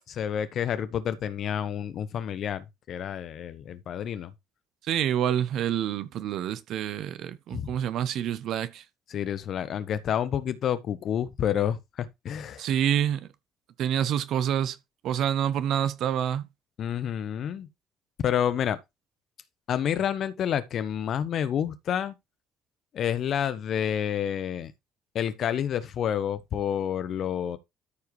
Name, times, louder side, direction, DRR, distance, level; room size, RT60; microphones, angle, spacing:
voice 1, 0.1-4.3 7.5-7.7 9.1-12.6 16.8-17.7 18.2-18.8 19.7-22.1 22.9-24.7 25.1-27.6, left 9 dB, 55° left, 1.1 m, -29 dB
voice 2, 4.8-8.8 12.6-13.3 13.8-14.8 15.0-16.5, right 10 dB, 60° right, 0.9 m, -27 dB
13.0 x 4.8 x 3.2 m
figure-of-eight pair, 45°, 0 cm